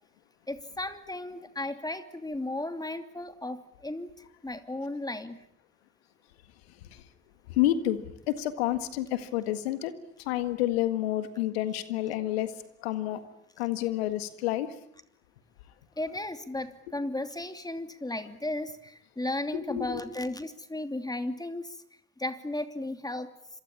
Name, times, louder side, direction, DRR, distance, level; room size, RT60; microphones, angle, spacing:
voice 1, 0.5-5.4 16.0-21.8 22.2-23.3, left 1 dB, 10° left, 9 dB, 2.8 m, -35 dB
voice 2, 7.5-9.9 10.3-12.5 12.8-13.2 13.6-14.7 19.5-20.0, left 13 dB, 80° left, 12 dB, 1.8 m, -29 dB
26.5 x 23.5 x 8.7 m, 0.73 s
hypercardioid pair, 50°, 30 cm